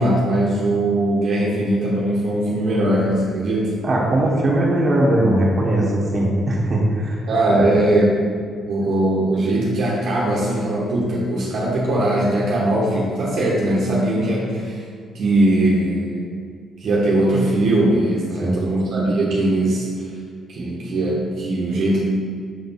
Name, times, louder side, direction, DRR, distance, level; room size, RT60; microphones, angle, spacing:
voice 1, 0.0-3.8 7.3-8.2 8.7-14.8 15.1-16.3 16.8-20.1 20.5-22.0, right 1 dB, 65° right, -5 dB, 1.1 m, -20 dB
voice 2, 3.8-7.2 7.5-7.7 18.4-18.6, right 1 dB, 35° right, -4 dB, 1.5 m, -19 dB
6.8 x 3.4 x 4.2 m, 2.1 s
cardioid pair, 90°, 0 cm